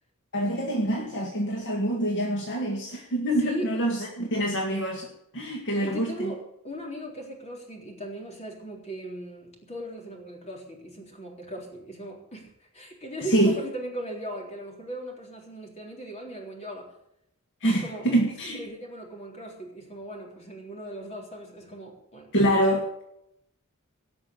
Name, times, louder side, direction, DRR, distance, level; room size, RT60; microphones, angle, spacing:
voice 1, 0.3-6.3 13.3-13.6 17.6-18.6 22.3-23.0, right 1 dB, 55° left, 1 dB, 1.9 m, -26 dB
voice 2, 5.8-16.9 17.6-18.0 18.5-22.3, right 1 dB, 30° left, 0 dB, 3.8 m, -38 dB
18.0 x 6.2 x 8.4 m, 0.76 s
head